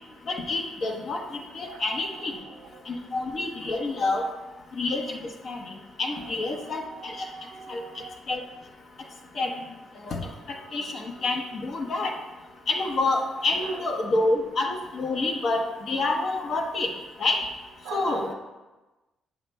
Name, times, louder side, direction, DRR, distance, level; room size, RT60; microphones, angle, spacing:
voice 1, 0.3-2.3 2.9-4.3 4.8-5.7 6.0-7.3 7.7-7.8 8.3-8.4 9.4-9.5 10.1-10.2 10.5-12.2 12.7-16.9 17.2-17.4 17.9-18.3, left 2 dB, 55° left, 1 dB, 0.9 m, -28 dB
voice 2, 1.6-2.8 3.6-4.3 6.1-8.1 13.6-13.8 17.8-18.3, right 5 dB, 85° right, 1 dB, 0.9 m, -43 dB
7.8 x 5.7 x 2.2 m, 1.1 s
cardioid pair, 90°, 0 cm